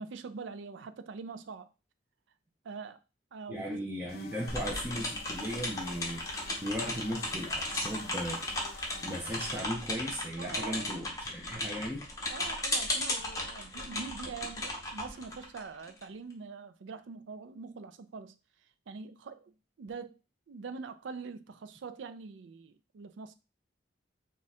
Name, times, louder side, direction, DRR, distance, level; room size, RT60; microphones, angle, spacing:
voice 1, 0.0-1.7 2.6-3.0 3.3-3.9 10.4-10.9 12.3-18.3 18.9-19.5 19.8-20.2 20.5-23.3, right 4 dB, 85° right, 0.4 m, -44 dB
voice 2, 3.5-12.1, equal, 10° right, 0.6 m, -37 dB
sound 1, 4.1-9.6, left 5 dB, 55° left, 0.4 m, -51 dB
sound 2, 4.5-16.0, left 1 dB, 15° left, 0.8 m, -36 dB
3.7 x 2.4 x 4.1 m
head